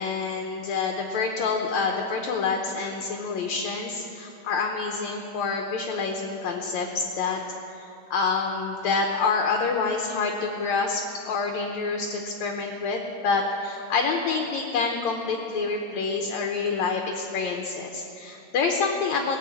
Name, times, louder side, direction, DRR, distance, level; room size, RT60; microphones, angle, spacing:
voice 1, 0.0-7.4 7.8-19.4, left 4 dB, 70° left, 2 dB, 2.0 m, -27 dB
17.5 x 7.8 x 8.3 m, 2.7 s
omnidirectional pair, 3.8 m